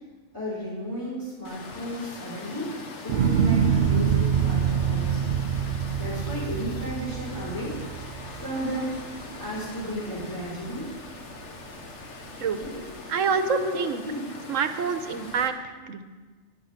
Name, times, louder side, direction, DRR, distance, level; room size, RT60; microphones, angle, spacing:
voice 1, 0.3-5.4 6.0-7.8 8.3-9.0 9.4-10.9 12.6-12.8 13.3-13.8 14.0-14.2 14.8-14.9, equal, 15° left, -9 dB, 3.4 m, -33 dB
Water, 1.4-15.5, left 3 dB, 65° left, 1.5 m, -42 dB
sound 1, 3.1-9.4 9.8-10.4, right 7 dB, 60° right, 0.6 m, -25 dB
voice 2, 13.1-14.0 14.5-15.5 15.9-16.0, right 6 dB, 80° right, 9 dB, 1.3 m, -26 dB
11.0 x 9.8 x 6.5 m, 1.3 s
omnidirectional pair, 1.3 m